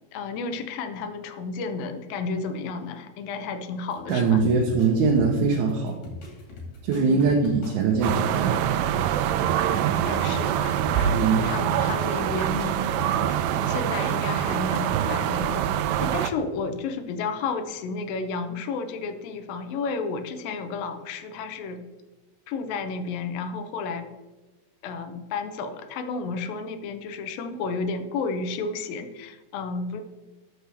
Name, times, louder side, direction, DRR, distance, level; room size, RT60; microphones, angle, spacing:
voice 1, 0.1-4.4 6.9-7.3 9.7-12.8 13.7-15.7 16.0-21.8 22.5-24.1 24.8-30.0, left 4 dB, 85° left, 8 dB, 2.6 m, -32 dB
sound 1, 3.9-13.4, left 3 dB, 70° left, 4.1 m, -41 dB
voice 2, 4.1-6.0 6.8-8.7 11.1-11.4, right 4 dB, 70° right, 0 dB, 2.2 m, -22 dB
sound 2, 8.0-16.3, right 10 dB, 90° right, 2.3 m, -25 dB
12.5 x 6.9 x 3.4 m, 1.2 s
omnidirectional pair, 4.0 m